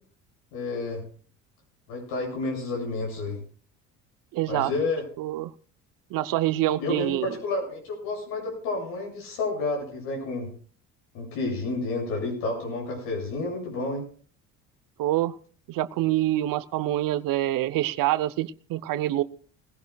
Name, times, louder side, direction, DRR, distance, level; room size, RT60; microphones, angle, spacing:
voice 1, 0.5-1.0 1.9-3.4 4.5-5.0 6.8-10.5 11.1-14.1, left 3 dB, 75° left, 0 dB, 7.8 m, -30 dB
voice 2, 4.3-4.7 5.2-5.5 6.1-7.3 15.0-15.3 15.7-19.2, right 14 dB, 60° right, 15 dB, 0.8 m, -26 dB
21.0 x 16.0 x 2.3 m, 0.44 s
hypercardioid pair, 65°, 37 cm